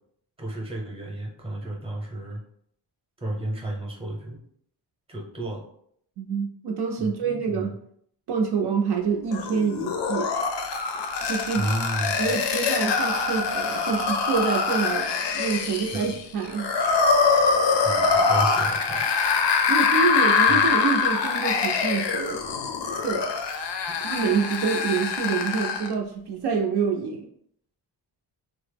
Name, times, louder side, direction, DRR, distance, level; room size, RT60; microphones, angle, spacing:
voice 1, 0.4-2.4 3.2-4.4 5.1-5.6 7.0-7.8 11.6-12.4 15.9-16.1 17.8-19.1, right 1 dB, 15° right, -2 dB, 0.7 m, -32 dB
voice 2, 6.2-7.7 8.3-10.3 10.9-11.7 12.2-16.7 19.7-22.4 23.0-23.3 24.0-27.3, right 5 dB, 65° right, 1 dB, 0.5 m, -27 dB
sound 1, 9.3-25.9, left 5 dB, 70° left, 0.5 m, -24 dB
3.7 x 2.0 x 3.3 m, 0.68 s
wide cardioid pair, 150°, 44 cm